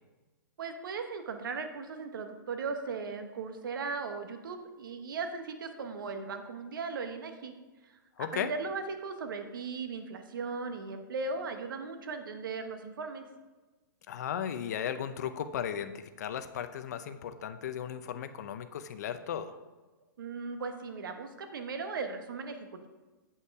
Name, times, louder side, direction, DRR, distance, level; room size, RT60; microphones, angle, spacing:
voice 1, 0.6-7.5 7.8-13.2 20.2-22.9, right 4 dB, 75° right, 7 dB, 1.1 m, -38 dB
voice 2, 8.2-8.5 14.1-19.6, left 9 dB, 50° left, 11 dB, 0.6 m, -36 dB
8.6 x 5.5 x 4.7 m, 1.2 s
hypercardioid pair, 165°, 11 cm